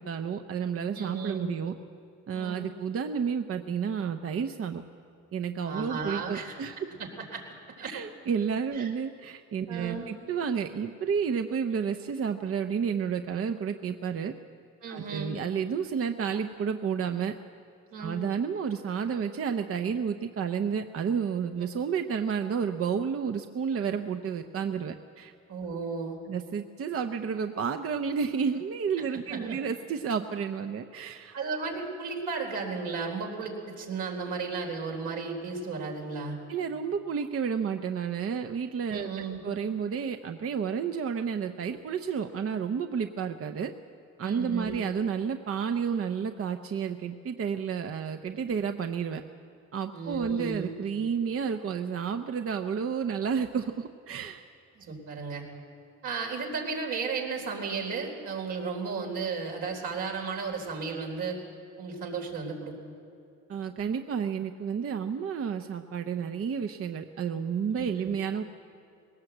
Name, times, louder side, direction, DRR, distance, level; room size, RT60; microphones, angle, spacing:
voice 1, 0.0-1.7 2.3-4.8 5.3-6.8 7.9-14.3 14.9-17.3 18.0-25.3 26.3-31.3 36.5-39.1 39.4-43.7 44.2-49.2 49.7-54.4 63.5-68.4, right 6 dB, 50° right, 7 dB, 0.8 m, -31 dB
voice 2, 0.9-1.5 2.3-2.6 5.6-6.7 7.0-7.4 7.8-7.9 8.7-8.9 9.7-10.1 14.8-15.3 17.9-18.2 25.5-26.2 29.3-29.6 31.3-36.4 38.9-39.4 44.2-44.8 49.9-50.7 54.8-55.4 56.0-61.4 61.8-62.7 67.8-68.2, right 4 dB, 85° right, 0 dB, 4.0 m, -34 dB
20.5 x 18.0 x 7.9 m, 2.6 s
cardioid pair, 90°, 30 cm